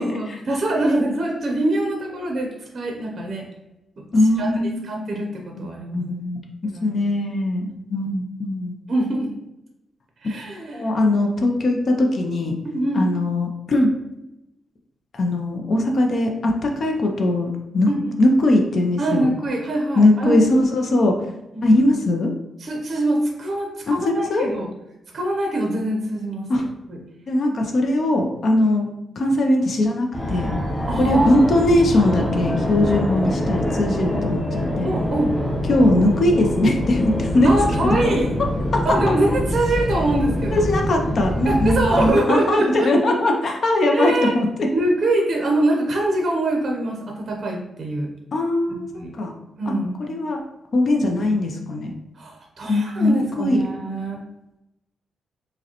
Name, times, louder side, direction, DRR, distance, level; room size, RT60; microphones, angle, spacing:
voice 1, 0.0-3.4 4.4-4.5 4.8-6.1 6.7-7.0 8.9-9.3 10.2-10.9 12.6-13.0 17.9-18.2 19.0-20.4 21.0-21.1 21.5-21.8 22.6-24.7 25.1-26.5 26.9-27.0 30.9-31.5 34.8-35.3 37.4-38.3 38.8-40.6 41.4-42.9 43.9-44.3 44.7-48.1 48.7-49.1 49.6-50.0 52.2-54.2, right 1 dB, 40° right, 0 dB, 0.5 m, -24 dB
voice 2, 4.1-5.1 5.5-5.7 5.9-6.4 6.8-8.7 10.7-12.6 12.9-13.9 15.1-17.9 18.2-19.3 20.0-21.3 21.6-22.3 23.9-24.5 26.5-26.6 27.3-28.9 29.2-30.5 31.0-34.9 35.7-37.5 37.8-38.1 38.9-39.0 40.5-44.7 48.3-49.3 49.7-49.8 50.1-50.4 50.7-51.9 52.7-53.6, left 1 dB, 45° left, 2 dB, 0.4 m, -20 dB
Fixed-wing aircraft airplane, 30.1-42.1, left 1 dB, 20° left, 0.9 m, -25 dB
4.8 x 2.1 x 2.9 m, 0.91 s
wide cardioid pair, 150°, 0 cm